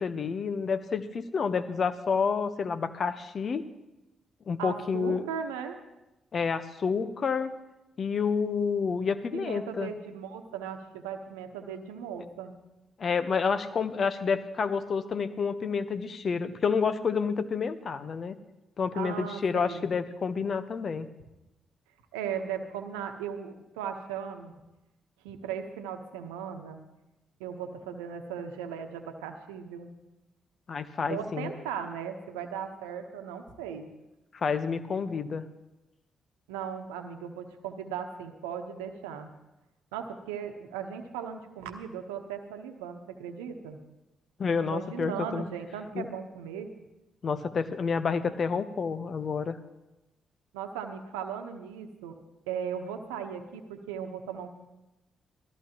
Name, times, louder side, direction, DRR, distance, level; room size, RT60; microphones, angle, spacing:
voice 1, 0.0-3.6 4.5-5.2 6.3-7.5 8.0-9.9 13.0-18.4 18.8-21.1 30.7-31.5 34.3-35.5 44.4-45.5 45.9-46.1 47.2-49.6, left 5 dB, 50° left, 12 dB, 0.9 m, -29 dB
voice 2, 4.6-5.8 9.3-12.6 18.9-19.9 22.1-24.5 25.2-26.8 27.4-29.9 31.0-33.9 36.5-39.3 39.9-43.8 44.6-46.7 50.5-52.2 52.5-54.5, right 7 dB, 85° right, 6 dB, 1.0 m, -37 dB
18.0 x 14.0 x 3.0 m, 0.98 s
hypercardioid pair, 45°, 0 cm